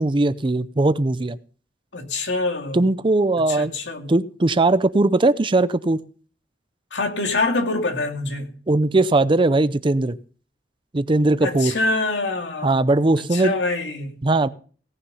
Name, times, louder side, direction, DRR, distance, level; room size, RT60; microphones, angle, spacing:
voice 1, 0.0-1.4 2.7-3.7 4.1-6.0 8.7-10.2 10.9-11.7 12.6-13.6 14.2-14.5, right 2 dB, 30° right, 0.6 m, -19 dB
voice 2, 1.9-2.8 3.5-4.1 6.9-8.5 11.4-12.8 13.3-14.2, left 2 dB, 85° left, 2.5 m, -25 dB
17.5 x 6.6 x 5.6 m
head